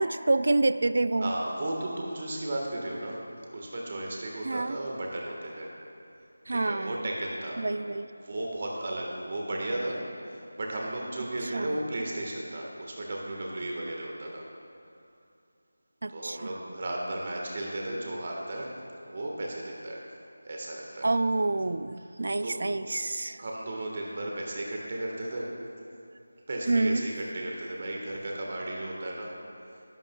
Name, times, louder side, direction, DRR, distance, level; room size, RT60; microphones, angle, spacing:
voice 1, 0.0-1.3 4.4-4.8 6.5-7.0 7.6-8.1 11.5-11.8 16.0-16.4 21.0-23.4 26.7-27.1, right 2 dB, 60° right, 13 dB, 0.3 m, -27 dB
voice 2, 1.2-3.2 3.5-5.7 6.5-7.6 8.2-10.0 10.3-14.4 16.1-18.7 19.1-20.0 20.5-21.1 22.4-22.6 23.4-25.5 26.5-29.3, right 1 dB, 40° right, -2 dB, 1.4 m, -34 dB
15.0 x 11.5 x 2.3 m, 2.5 s
figure-of-eight pair, 170°, 0 cm